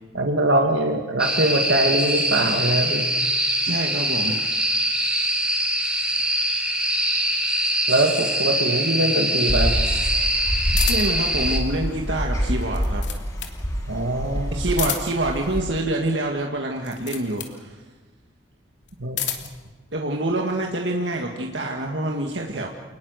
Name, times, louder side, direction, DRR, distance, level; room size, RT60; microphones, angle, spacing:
voice 1, 0.1-3.1 7.9-9.7 13.9-14.6 19.0-19.2, right 1 dB, 90° right, 3 dB, 2.1 m, -22 dB
sound 1, 1.2-11.6, right 1 dB, 5° right, 3.1 m, -23 dB
voice 2, 3.6-4.4 10.9-13.0 14.5-17.8 19.9-22.7, right 1 dB, 70° right, 1 dB, 2.0 m, -26 dB
sound 2, 9.5-15.6, equal, 20° left, 5.9 m, -26 dB
sound 3, 10.8-11.3 12.6-13.6 14.7-15.3 16.8-17.6 18.8-19.6, left 10 dB, 70° left, 2.8 m, -30 dB
28.5 x 20.0 x 6.5 m, 1.4 s
head